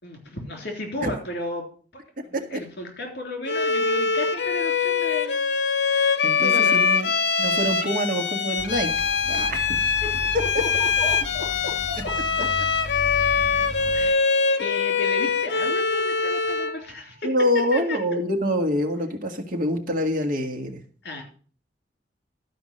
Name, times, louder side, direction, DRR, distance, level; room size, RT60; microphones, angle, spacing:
voice 1, 0.0-1.7 2.2-5.4 5.8-6.9 10.0-10.1 10.4-12.1 13.9-14.2 14.6-17.3 17.7-18.0 21.0-21.2, left 1 dB, 65° left, 3 dB, 3.3 m, -34 dB
Bowed string instrument, 3.5-16.8, left 5 dB, 85° left, 0.9 m, -23 dB
voice 2, 6.2-7.1 7.4-8.9 9.3-9.8 10.5-10.6 12.4-12.5 17.2-20.8, equal, 55° right, 3 dB, 1.9 m, -25 dB
sound 1, 8.6-14.1, equal, 45° left, 3.0 m, -36 dB
12.0 x 5.1 x 6.6 m, 0.42 s
head